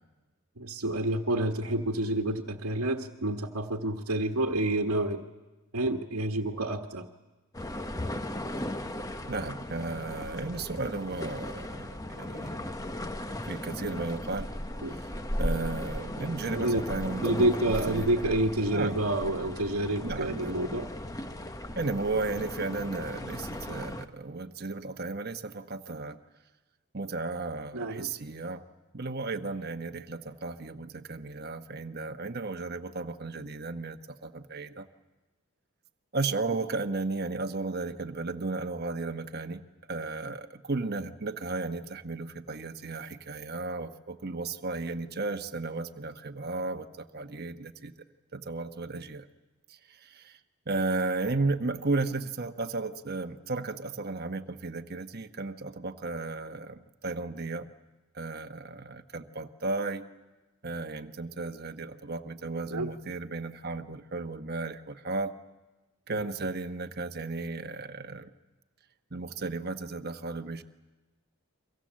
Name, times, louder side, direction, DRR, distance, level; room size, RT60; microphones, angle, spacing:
voice 1, 0.6-5.2 5.7-7.1 14.8-14.9 16.5-16.8 17.2-20.9 27.7-28.1 62.7-62.9 66.1-66.2, right 1 dB, 80° right, 2 dB, 1.5 m, -28 dB
sound 1, 7.5-24.1, left 1 dB, 15° left, 1.0 m, -37 dB
voice 2, 9.3-12.7 13.4-14.5 14.9-15.1 15.4-18.1 18.7-19.0 20.0-20.5 21.8-26.2 26.9-28.6 28.9-34.9 36.1-39.6 39.9-47.9 48.3-49.3 49.7-50.4 50.7-57.7 58.1-60.1 60.6-65.3 66.1-68.3 69.1-70.6, right 3 dB, 45° right, 7 dB, 1.1 m, -34 dB
29.5 x 24.5 x 7.5 m, 1.2 s
head